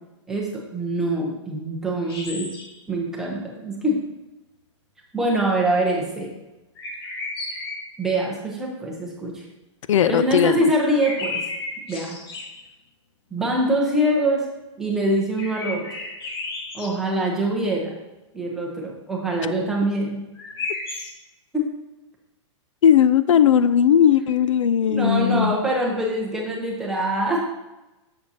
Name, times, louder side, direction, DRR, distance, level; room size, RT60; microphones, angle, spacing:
voice 1, 0.3-2.5 2.9-4.0 5.1-6.3 8.0-9.4 10.1-11.4 11.9-12.2 13.3-14.4 14.8-15.8 16.7-17.9 18.3-20.2 21.5-21.7 24.9-27.4, right 1 dB, 5° right, -3 dB, 0.8 m, -24 dB
sound 1, 2.0-2.8 6.8-8.0 10.8-12.7 15.4-17.0 20.4-21.1, left 3 dB, 50° left, 1.4 m, -33 dB
voice 2, 9.9-10.7 22.8-25.6, left 9 dB, 80° left, 14 dB, 0.4 m, -17 dB
7.5 x 6.9 x 2.8 m, 1.0 s
hypercardioid pair, 170°, 16 cm